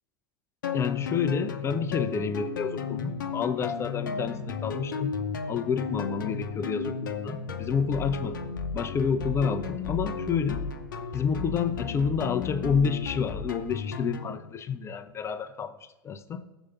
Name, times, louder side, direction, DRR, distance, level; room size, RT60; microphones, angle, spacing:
sound 1, 0.6-14.4, left 6 dB, 70° left, 0.7 m, -34 dB
voice 1, 0.7-5.1 5.5-8.4 8.7-10.6 11.1-15.7 16.0-16.4, left 6 dB, 25° left, 11 dB, 0.5 m, -29 dB
7.1 x 4.8 x 6.8 m, 1.1 s
figure-of-eight pair, 85°, 11 cm